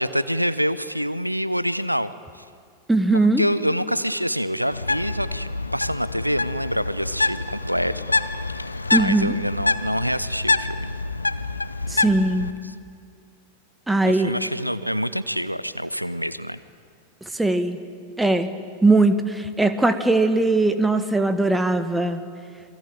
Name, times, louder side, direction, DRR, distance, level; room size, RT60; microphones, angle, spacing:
voice 1, 0.0-2.4 3.1-7.9 9.0-10.9 14.1-16.6, equal, 90° right, 15 dB, 0.7 m, -26 dB
voice 2, 2.9-3.4 8.9-9.3 11.9-12.5 13.9-14.3 17.3-17.8 18.2-18.5 18.8-22.2, right 2 dB, 5° right, 9 dB, 1.7 m, -20 dB
Bird, 4.7-12.5, left 3 dB, 80° left, 0.8 m, -26 dB
28.0 x 21.5 x 9.0 m, 2.2 s
figure-of-eight pair, 90°, 0 cm